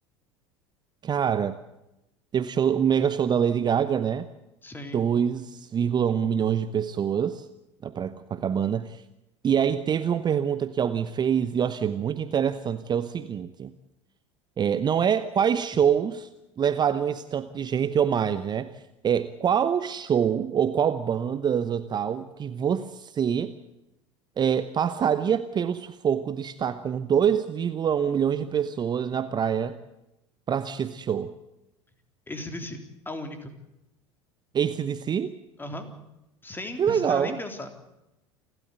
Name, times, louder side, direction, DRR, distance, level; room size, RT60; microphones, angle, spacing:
voice 1, 1.0-1.6 2.3-4.3 4.9-7.4 7.8-9.0 9.4-13.7 14.6-16.3 16.6-18.7 19.0-23.5 24.4-29.8 30.5-31.3 34.5-35.3 36.8-37.4, right 8 dB, 30° right, 13 dB, 0.9 m, -25 dB
voice 2, 4.6-5.0 32.3-33.5 35.6-35.9 36.4-37.7, left 1 dB, 15° left, 7 dB, 3.6 m, -36 dB
29.0 x 12.5 x 8.1 m, 0.91 s
figure-of-eight pair, 75°, 15 cm